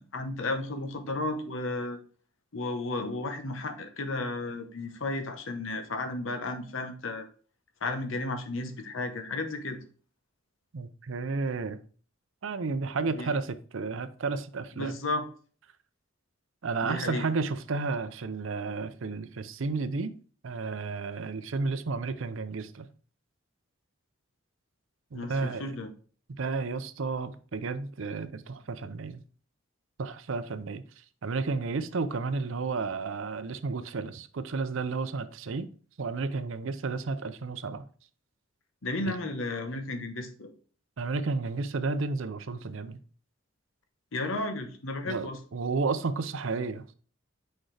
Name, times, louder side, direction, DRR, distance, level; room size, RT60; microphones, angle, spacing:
voice 1, 0.0-2.0 2.5-7.3 7.8-9.8 13.2-13.3 14.8-15.3 16.8-17.2 25.1-25.9 38.8-40.5 44.1-45.4, left 2 dB, 70° left, 0.9 m, -33 dB
voice 2, 10.7-11.8 12.4-14.9 16.6-20.1 20.4-22.9 25.1-25.7 26.4-29.2 30.0-30.8 31.2-35.7 36.0-37.9 39.1-39.2 41.0-43.0 45.1-46.9, right 4 dB, 70° right, 0.5 m, -32 dB
6.2 x 5.1 x 3.3 m
head